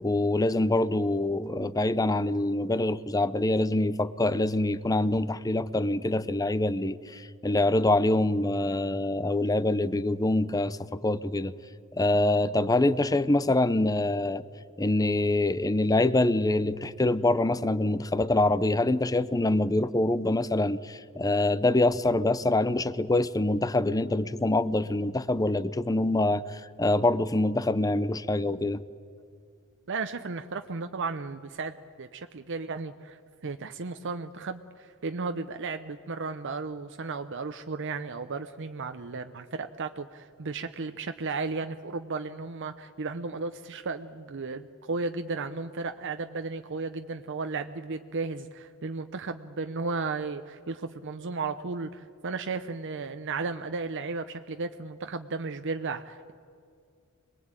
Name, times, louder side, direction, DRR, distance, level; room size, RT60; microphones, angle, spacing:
voice 1, 0.0-11.5 11.9-14.4 14.8-28.8, left 2 dB, 15° left, 16 dB, 0.6 m, -25 dB
voice 2, 29.9-56.3, right 4 dB, 60° right, 8 dB, 0.7 m, -34 dB
25.5 x 20.5 x 8.9 m, 2.3 s
head